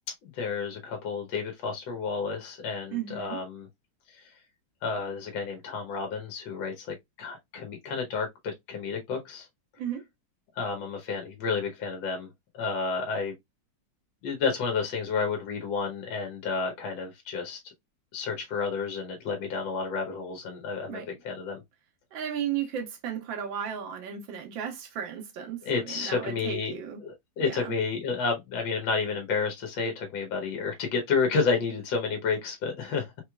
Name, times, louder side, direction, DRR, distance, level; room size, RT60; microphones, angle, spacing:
voice 1, 0.2-3.7 4.1-4.3 4.8-9.5 10.6-12.3 12.5-13.3 14.2-17.7 18.1-21.6 25.6-26.7 27.0-33.1, left 5 dB, 80° left, 1.6 m, -31 dB
voice 2, 2.9-3.4 9.8-10.0 20.9-21.1 22.1-25.6 25.9-27.0 27.4-27.7, right 9 dB, 85° right, 1.7 m, -34 dB
4.1 x 3.1 x 2.2 m
omnidirectional pair, 2.0 m